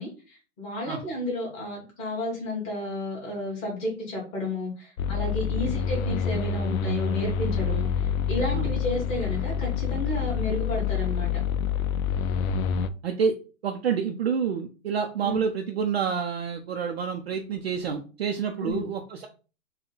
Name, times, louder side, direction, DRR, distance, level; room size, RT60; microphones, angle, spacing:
voice 1, 0.0-11.3 15.2-15.4 18.6-18.9, left 1 dB, 15° left, -3 dB, 1.2 m, -32 dB
sound 1, 5.0-12.9, left 7 dB, 80° left, 0.5 m, -27 dB
voice 2, 13.0-13.3 13.6-19.3, right 6 dB, 50° right, 3 dB, 0.4 m, -28 dB
3.9 x 2.2 x 3.8 m, 0.34 s
hypercardioid pair, 170°, 41 cm